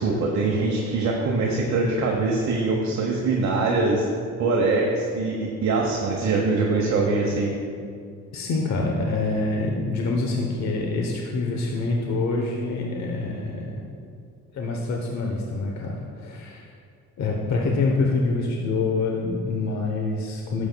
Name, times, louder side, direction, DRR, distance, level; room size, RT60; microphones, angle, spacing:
voice 1, 0.0-4.1 4.4-7.6, right 3 dB, 65° right, -1 dB, 1.1 m, -23 dB
voice 2, 8.3-13.7 14.5-16.7 17.2-20.7, left 3 dB, 65° left, 0 dB, 1.0 m, -26 dB
12.0 x 7.3 x 2.3 m, 2.3 s
cardioid pair, 90°, 30 cm